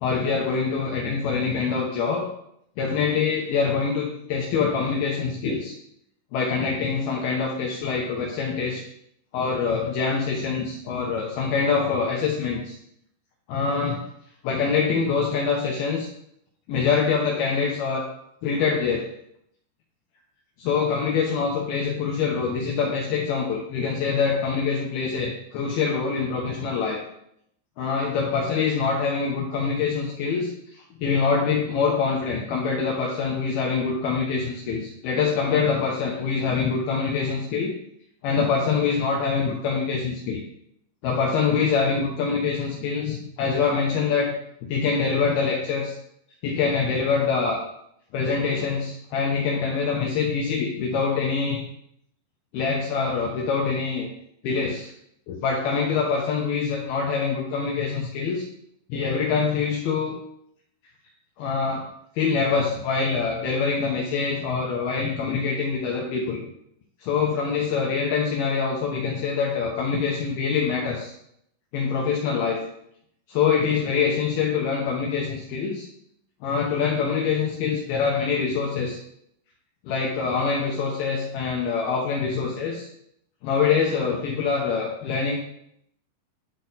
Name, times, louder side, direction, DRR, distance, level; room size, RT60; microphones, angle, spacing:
voice 1, 0.0-2.3 2.8-5.8 6.3-8.8 9.3-12.8 13.5-14.0 14.4-16.1 16.7-18.1 18.4-19.1 20.6-27.0 27.8-37.7 38.2-40.4 41.0-44.3 44.7-46.0 46.4-47.6 48.1-51.6 52.5-54.1 54.4-54.9 55.3-58.5 58.9-60.1 61.4-61.8 62.1-66.4 67.0-71.1 71.7-72.6 73.3-75.9 76.4-79.0 79.8-82.9 83.4-85.4, left 5 dB, 90° left, -1 dB, 2.1 m, -25 dB
11.0 x 4.3 x 4.0 m, 0.74 s
omnidirectional pair, 5.7 m